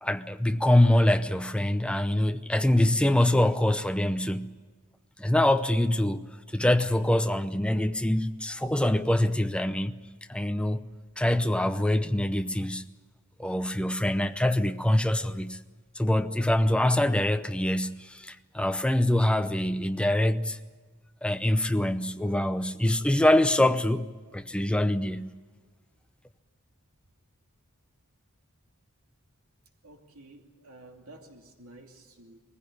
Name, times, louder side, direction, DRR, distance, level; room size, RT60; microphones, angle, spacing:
voice 1, 0.0-4.5 5.2-9.9 10.3-10.8 11.2-12.9 13.4-15.6 16.0-20.6 21.2-25.3, left 1 dB, 5° left, 0.7 m, -24 dB
voice 2, 29.8-32.4, right 2 dB, 85° right, 2.8 m, -51 dB
21.0 x 15.5 x 9.9 m
head